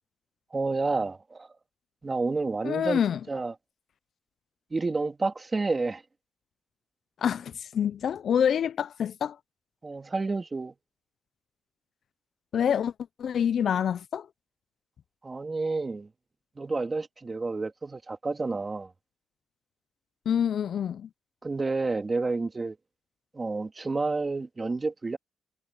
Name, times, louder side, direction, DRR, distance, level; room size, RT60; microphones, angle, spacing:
voice 1, 0.5-1.5 2.0-3.0 3.3-3.5 4.7-6.0 9.8-10.7 15.2-16.1 16.6-18.9 21.4-22.8 23.3-25.2, right 3 dB, 25° right, 2.5 m, -29 dB
voice 2, 2.6-3.2 7.2-9.4 12.5-12.9 13.2-14.3 20.3-21.1, left 8 dB, 60° left, 0.4 m, -26 dB
cardioid pair, 115°, 0 cm